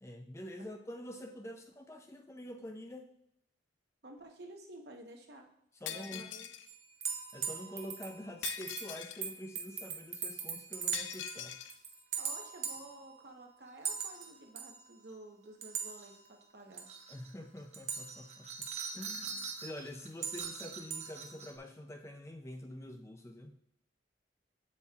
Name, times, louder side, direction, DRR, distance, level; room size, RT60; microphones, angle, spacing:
voice 1, 0.0-3.1 5.8-6.3 7.3-11.6 17.1-18.7 18.9-23.5, left 1 dB, 15° left, 5 dB, 0.4 m, -46 dB
voice 2, 4.0-5.4 5.9-6.5 12.2-16.9, right 1 dB, 60° right, 2 dB, 1.0 m, -52 dB
Shatter, 5.9-6.7 8.4-9.3 10.9-11.7, left 10 dB, 85° left, 0.5 m, -42 dB
sound 1, 6.7-11.4 11.7-13.1 13.8-14.3 14.6-14.8 15.6-16.4 16.7-17.3 17.6-21.6, right 6 dB, 35° right, 0.8 m, -40 dB
7.9 x 7.3 x 2.4 m, 0.76 s
head